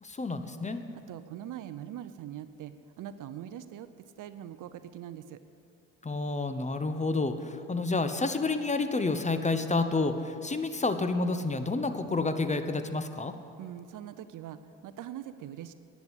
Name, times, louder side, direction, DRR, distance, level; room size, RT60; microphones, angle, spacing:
voice 1, 0.0-0.8 6.0-13.3, left 3 dB, 20° left, 9 dB, 0.9 m, -29 dB
voice 2, 1.1-5.4 13.6-15.7, right 11 dB, 50° right, 12 dB, 0.6 m, -42 dB
10.5 x 8.4 x 7.8 m, 2.5 s
hypercardioid pair, 60°, 40 cm